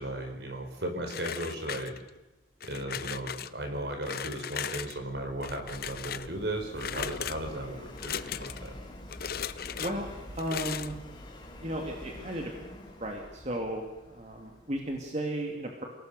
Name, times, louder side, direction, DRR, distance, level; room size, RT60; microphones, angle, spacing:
voice 1, 0.0-1.9 2.6-8.7, right 1 dB, 60° right, 5 dB, 4.6 m, -36 dB
sound 1, 1.1-2.2 2.6-3.5 4.0-5.0 5.4-6.3 6.8-7.4 8.0-8.7 9.1-9.9 10.4-10.9, left 8 dB, 55° left, 0.8 m, -37 dB
Subway metro underground, 3.7-15.0, left 1 dB, 25° left, 3.8 m, -47 dB
voice 2, 9.8-10.1 10.4-11.0 11.6-12.7 13.0-15.8, right 1 dB, 35° right, 1 dB, 2.6 m, -34 dB
28.5 x 18.0 x 6.7 m, 1.0 s
head